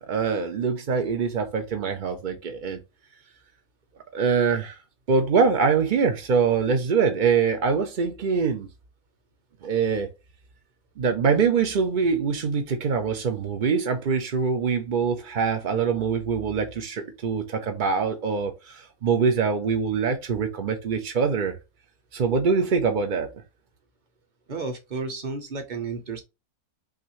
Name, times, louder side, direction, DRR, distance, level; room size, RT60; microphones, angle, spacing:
voice 1, 0.0-2.8 4.1-4.8 5.1-8.7 9.6-10.1 11.0-21.5 22.1-23.3, right 5 dB, 60° right, 0.5 m, -24 dB
voice 2, 24.5-26.2, right 4 dB, 35° right, 0.9 m, -32 dB
6.2 x 2.6 x 3.1 m
omnidirectional pair, 1.6 m